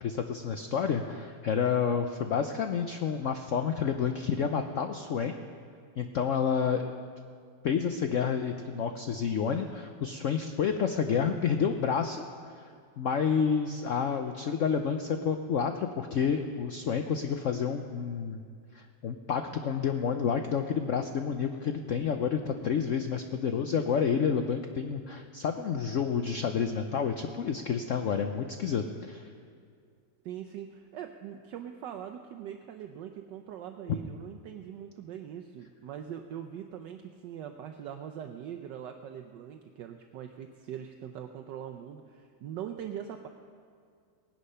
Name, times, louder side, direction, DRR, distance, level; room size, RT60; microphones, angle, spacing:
voice 1, 0.0-5.3 6.0-6.9 7.6-18.4 18.7-29.3, left 6 dB, 85° left, 6 dB, 0.6 m, -29 dB
voice 2, 30.2-43.3, right 9 dB, 70° right, 6 dB, 1.2 m, -42 dB
18.0 x 10.0 x 5.6 m, 2.2 s
omnidirectional pair, 2.1 m